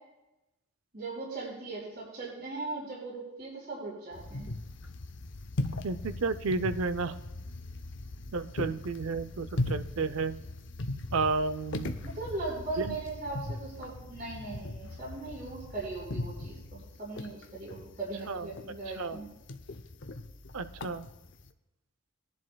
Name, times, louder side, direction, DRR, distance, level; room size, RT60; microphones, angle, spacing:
voice 1, 0.9-4.5 12.0-19.3, right 3 dB, 50° right, -5 dB, 4.4 m, -39 dB
sound 1, 4.1-21.5, left 2 dB, 55° left, 0.7 m, -39 dB
voice 2, 5.8-7.2 8.3-10.4 11.1-12.0 12.8-13.0 18.3-18.5 19.0-19.2 20.5-21.1, right 4 dB, 65° right, 13 dB, 0.5 m, -32 dB
20.5 x 10.5 x 2.3 m, 0.97 s
head